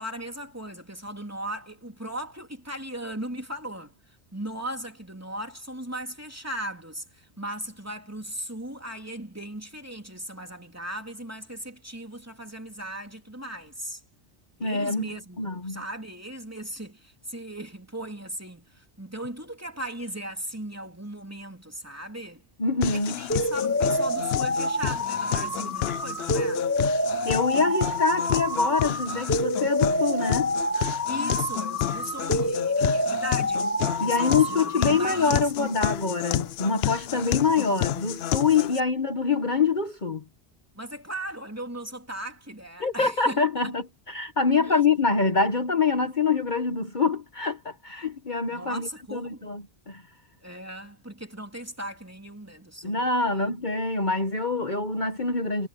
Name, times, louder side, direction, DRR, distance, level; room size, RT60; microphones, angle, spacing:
voice 1, 0.0-14.0 14.6-22.4 22.9-26.7 31.1-35.5 40.7-43.7 44.6-44.8 48.5-49.5 50.4-53.1 53.3-53.4, right 1 dB, 15° right, 3.2 m, -37 dB
voice 2, 14.6-15.1 15.4-15.8 22.6-23.1 27.2-30.5 34.0-40.2 42.8-50.0 52.8-55.7, left 4 dB, 45° left, 1.4 m, -25 dB
sound 1, 22.8-38.8, left 12 dB, 65° left, 0.8 m, -30 dB
sound 2, 23.3-35.3, left 1 dB, 10° left, 1.8 m, -28 dB
omnidirectional pair, 1.2 m